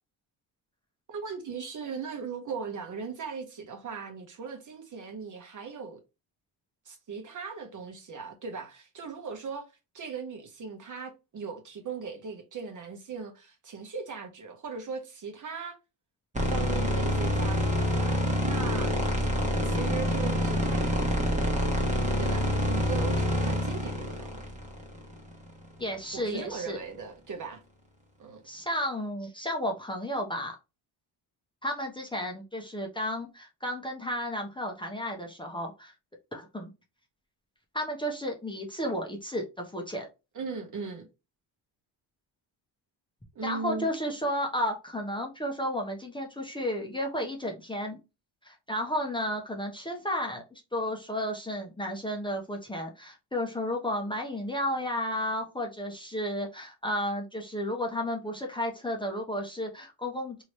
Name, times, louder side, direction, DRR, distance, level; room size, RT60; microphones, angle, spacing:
voice 1, 1.1-6.0 6.9-9.7 9.9-15.8 16.4-19.0 19.6-21.6 22.2-24.5 26.1-27.6 28.2-28.4 40.3-41.1 43.3-43.9, right 5 dB, 40° right, 1.0 m, -38 dB
sound 1, 16.3-25.5, equal, 15° right, 1.2 m, -27 dB
voice 2, 25.8-26.8 28.4-30.6 31.6-35.9 36.3-36.7 37.7-40.1 43.4-48.0 48.4-60.4, equal, 10° left, 0.8 m, -33 dB
3.0 x 2.8 x 3.0 m
cardioid pair, 85°, 45 cm